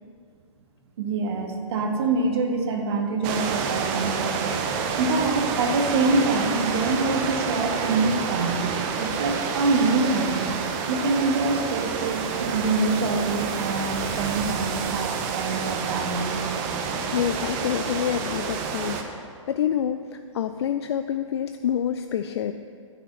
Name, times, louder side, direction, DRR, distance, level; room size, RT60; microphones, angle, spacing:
voice 1, 1.0-4.5 5.0-8.7 9.0-10.5 10.9-16.4, right 3 dB, 50° right, 3 dB, 1.6 m, -25 dB
sound 1, 3.2-19.0, right 6 dB, 30° right, 0.9 m, -28 dB
voice 2, 17.1-22.5, left 9 dB, 55° left, 9 dB, 0.4 m, -27 dB
10.0 x 6.0 x 7.5 m, 2.2 s
figure-of-eight pair, 125°, 17 cm